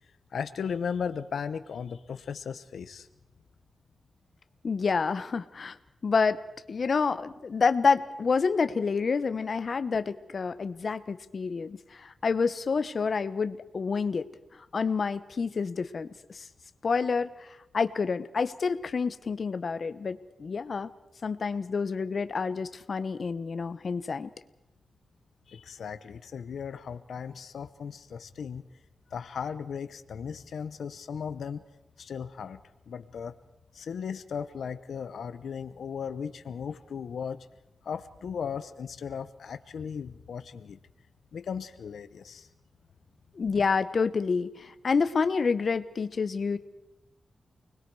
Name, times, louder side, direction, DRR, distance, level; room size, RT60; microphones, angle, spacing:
voice 1, 0.3-3.1 25.5-28.7 29.1-31.7 32.0-32.6 32.9-33.3 33.7-37.5 37.8-40.8 41.3-42.5, left 7 dB, 85° left, 11 dB, 0.8 m, -36 dB
voice 2, 4.6-5.8 6.0-6.4 6.7-14.3 14.7-16.5 16.8-20.9 21.2-24.3 43.3-46.6, left 5 dB, 55° left, 12 dB, 1.0 m, -28 dB
29.0 x 20.5 x 4.7 m, 0.91 s
wide cardioid pair, 110°, 0 cm